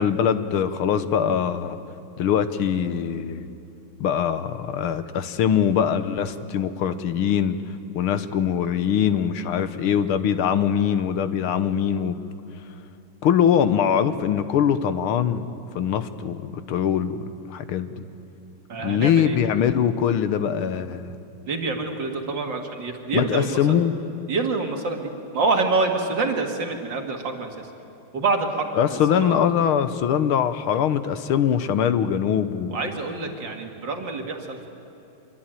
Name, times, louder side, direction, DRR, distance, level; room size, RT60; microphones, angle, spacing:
voice 1, 0.0-1.8 2.2-3.5 4.0-7.6 8.0-12.2 13.2-15.5 15.8-17.2 17.5-18.0 18.8-21.2 23.1-24.0 28.8-32.8, left 8 dB, 80° left, 11 dB, 1.8 m, -22 dB
voice 2, 18.7-19.4 21.5-23.8 24.3-27.5 28.1-29.3 32.7-34.7, right 3 dB, 55° right, 3 dB, 2.8 m, -26 dB
25.5 x 22.5 x 9.1 m, 2.7 s
omnidirectional pair, 2.4 m